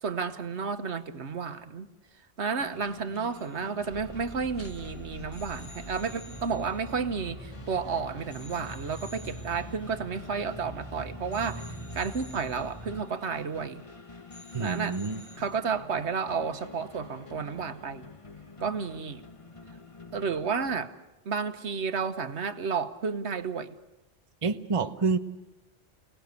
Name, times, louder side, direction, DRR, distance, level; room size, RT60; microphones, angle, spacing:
voice 1, 0.0-1.9 2.4-13.8 14.6-15.0 15.4-18.1 18.6-19.2 20.1-20.9 21.2-23.7, right 5 dB, 65° right, 10 dB, 1.4 m, -32 dB
sound 1, 2.6-20.8, left 3 dB, 30° left, 1.2 m, -48 dB
sound 2, 3.1-3.6 3.8-4.1 4.5-7.9 8.3-10.9 11.3-14.0 14.3-15.4, left 2 dB, 55° left, 3.0 m, -54 dB
sound 3, 3.9-13.0, right 1 dB, 10° right, 4.2 m, -44 dB
voice 2, 14.5-15.2 24.4-25.2, right 4 dB, 30° right, 8 dB, 0.9 m, -28 dB
29.0 x 19.0 x 8.2 m, 1.0 s
omnidirectional pair, 1.2 m